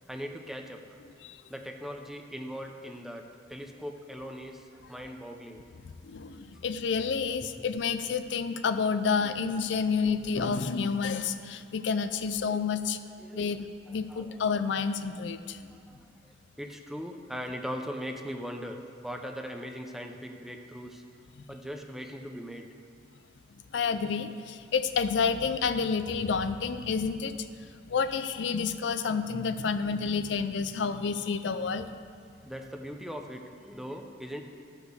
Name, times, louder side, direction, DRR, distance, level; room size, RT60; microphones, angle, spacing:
voice 1, 0.1-1.0 1.5-5.6 13.2-13.5 13.9-14.4 15.6-21.0 21.5-22.7 32.4-34.4, equal, ahead, 4 dB, 0.6 m, -40 dB
voice 2, 6.0-13.0 13.3-15.6 23.7-31.9, left 5 dB, 65° left, 10 dB, 0.4 m, -29 dB
12.0 x 4.9 x 6.6 m, 2.3 s
head